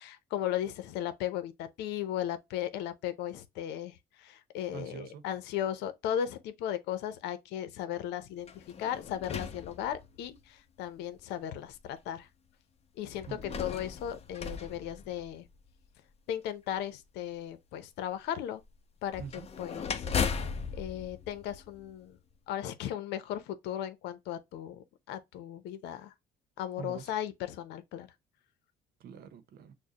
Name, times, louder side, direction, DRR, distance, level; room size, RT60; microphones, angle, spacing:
voice 1, 0.0-8.5 8.8-12.3 13.0-13.3 13.6-15.5 16.3-18.6 19.0-19.2 19.6-20.0 20.8-22.2 22.5-26.1 26.6-28.1, left 10 dB, 90° left, 0.8 m, -36 dB
voice 2, 4.7-5.2 13.3-13.6 19.2-19.5 26.8-27.1 29.0-29.7, right 7 dB, 70° right, 0.9 m, -44 dB
sound 1, 8.4-10.4 11.2-11.3 13.1-15.7 19.1-22.2, left 6 dB, 40° left, 0.8 m, -37 dB
6.4 x 2.3 x 2.9 m
cardioid pair, 110°, 17 cm